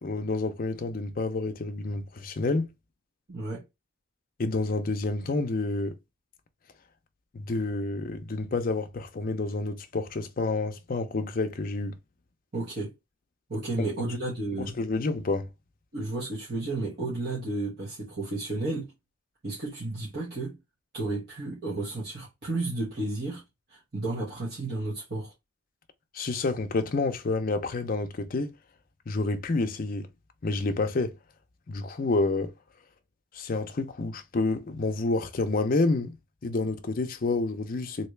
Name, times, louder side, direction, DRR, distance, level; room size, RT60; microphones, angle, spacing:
voice 1, 0.0-2.7 4.4-6.0 7.3-12.0 13.8-13.9 14.6-15.5 26.1-28.5 29.1-30.1 30.4-31.2 31.7-32.5 33.3-36.2 36.4-38.1, left 3 dB, 45° left, 0.5 m, -29 dB
voice 2, 3.3-3.6 12.5-12.9 13.5-14.7 15.9-18.9 19.4-20.6 20.9-23.4 23.7-25.3, right 2 dB, 50° right, 1.4 m, -32 dB
3.2 x 2.8 x 3.1 m
head